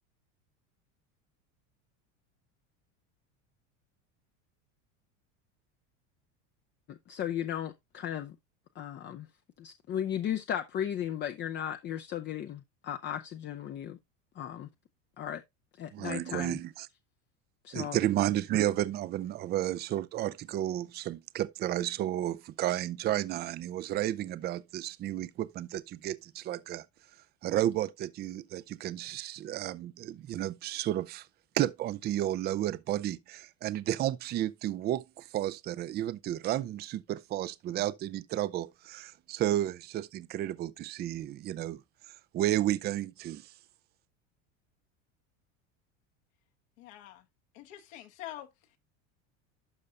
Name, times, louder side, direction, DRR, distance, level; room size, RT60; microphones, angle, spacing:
voice 1, 6.9-8.4 8.8-9.3 9.6-14.0 14.4-14.7 15.2-15.4 15.8-16.6 17.6-18.0, left 10 dB, 30° left, 0.6 m, -35 dB
voice 2, 15.9-16.9 17.7-26.9 27.4-31.3 31.5-41.8 42.3-43.5, right 13 dB, 25° right, 0.4 m, -32 dB
voice 3, 46.8-47.3 47.5-48.8, left 13 dB, 70° left, 1.6 m, -46 dB
12.0 x 5.4 x 2.5 m
supercardioid pair, 130°, 38 cm